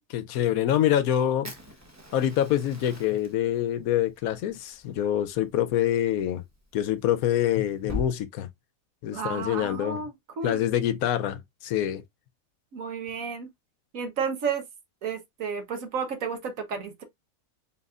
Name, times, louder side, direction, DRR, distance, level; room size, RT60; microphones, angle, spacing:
voice 1, 0.1-1.5 2.1-6.4 6.7-8.5 9.0-10.0 10.4-12.0, left 11 dB, 75° left, 1.0 m, -25 dB
Fire, 1.4-8.1, left 2 dB, 15° right, 0.8 m, -43 dB
voice 2, 9.1-10.6 12.7-13.5 13.9-14.6 15.0-17.0, right 5 dB, 65° right, 1.4 m, -32 dB
4.0 x 4.0 x 2.4 m
omnidirectional pair, 1.6 m